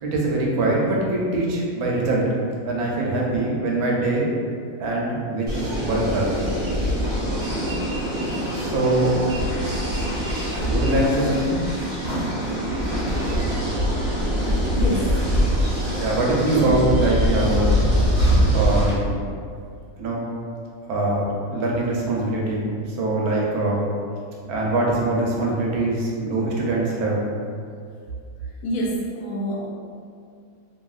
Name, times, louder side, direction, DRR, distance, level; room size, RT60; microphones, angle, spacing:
voice 1, 0.0-2.2 2.6-4.3 4.8-6.3 8.5-9.2 10.6-11.6 15.9-17.7 18.5-19.1 20.0-20.2 20.9-23.9 24.5-27.2, right 2 dB, 80° right, -3 dB, 1.1 m, -23 dB
sound 1, 5.5-18.9, equal, 35° right, 0.8 m, -23 dB
voice 2, 14.7-15.3 16.4-16.9 28.6-29.7, right 1 dB, 75° left, -3 dB, 1.0 m, -26 dB
2.8 x 2.6 x 2.4 m, 2.3 s
omnidirectional pair, 1.6 m